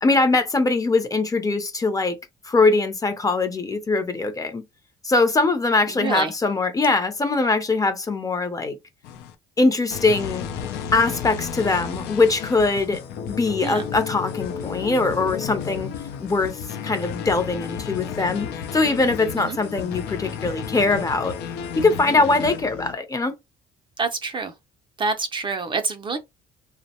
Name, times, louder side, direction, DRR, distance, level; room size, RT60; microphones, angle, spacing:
voice 1, 0.0-2.2 2.4-4.6 5.0-8.8 9.6-10.4 10.9-13.0 13.3-15.9 16.2-16.6 16.8-21.4 21.8-23.4, left 3 dB, 20° left, 0.5 m, -22 dB
voice 2, 5.9-6.3 13.6-13.9 19.3-19.6 24.0-24.5 25.0-26.2, right 4 dB, 30° right, 0.4 m, -27 dB
sound 1, 9.0-9.3 9.9-22.9, left 7 dB, 85° left, 0.5 m, -32 dB
2.5 x 2.0 x 2.8 m
cardioid pair, 110°, 17 cm